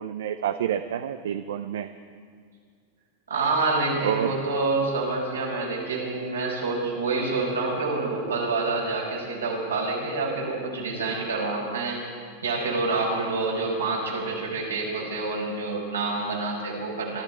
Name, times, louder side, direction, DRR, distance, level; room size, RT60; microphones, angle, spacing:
voice 1, 0.0-1.9 4.0-4.4, right 10 dB, 70° right, 10 dB, 0.6 m, -28 dB
voice 2, 3.3-12.0 12.4-17.2, right 3 dB, 85° right, -3 dB, 4.9 m, -27 dB
24.5 x 13.0 x 4.5 m, 2.1 s
hypercardioid pair, 95°, 0 cm